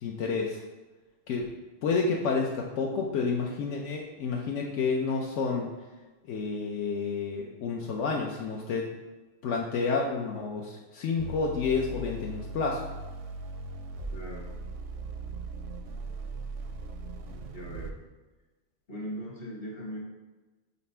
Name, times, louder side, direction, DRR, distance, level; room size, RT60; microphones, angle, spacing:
voice 1, 0.0-0.6 1.3-1.4 1.8-5.7 6.3-8.9 9.4-12.9, left 4 dB, 80° left, 0 dB, 1.0 m, -30 dB
sound 1, 11.2-17.9, right 2 dB, 85° right, 1.0 m, -39 dB
voice 2, 14.1-14.5 17.5-18.0 18.9-20.0, equal, 50° left, -1 dB, 1.4 m, -39 dB
5.8 x 4.1 x 4.3 m, 1.2 s
omnidirectional pair, 1.2 m